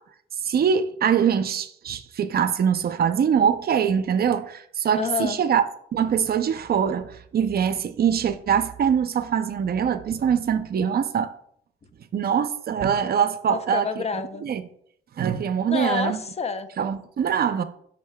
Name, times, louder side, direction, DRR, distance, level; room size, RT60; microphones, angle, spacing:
voice 1, 0.4-5.6 5.9-11.3 12.1-13.9 14.4-14.6 15.2-16.2 16.8-17.6, right 8 dB, 50° right, 0.6 m, -23 dB
voice 2, 4.9-5.4 13.5-14.4 15.7-16.7, left 5 dB, 30° left, 0.6 m, -28 dB
8.1 x 6.4 x 2.3 m
cardioid pair, 90°, 20 cm